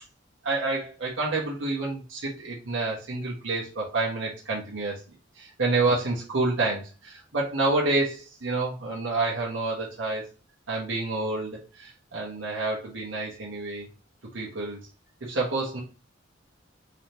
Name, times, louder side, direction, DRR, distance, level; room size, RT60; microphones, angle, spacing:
voice 1, 0.4-4.9 5.4-10.2 10.7-13.9 14.3-14.8 15.2-15.8, right 3 dB, 90° right, -4 dB, 1.2 m, -28 dB
3.9 x 3.4 x 2.9 m, 0.32 s
head